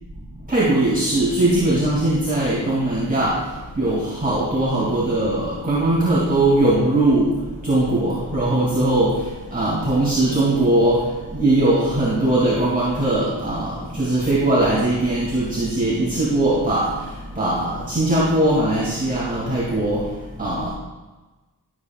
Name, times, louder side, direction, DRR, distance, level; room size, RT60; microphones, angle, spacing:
voice 1, 0.5-3.4 3.8-7.3 7.6-9.2 9.5-17.0 17.4-20.1 20.4-20.7, right 1 dB, 20° right, -7 dB, 2.8 m, -20 dB
13.5 x 7.9 x 2.5 m, 1.2 s
cardioid pair, 55°, 42 cm